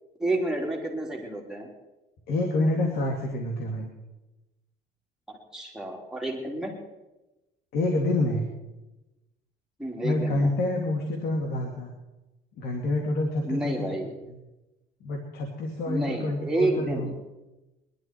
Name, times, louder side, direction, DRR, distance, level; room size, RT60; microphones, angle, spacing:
voice 1, 0.2-1.7 5.3-6.7 9.8-10.5 13.4-14.2 15.9-17.2, right 2 dB, 5° right, -2 dB, 3.5 m, -30 dB
voice 2, 2.3-3.9 7.7-8.5 10.0-11.9 12.6-13.9 14.3-14.4 15.0-17.1, left 2 dB, 70° left, 2 dB, 2.5 m, -27 dB
21.0 x 12.0 x 4.6 m, 1.0 s
cardioid pair, 110°, 17 cm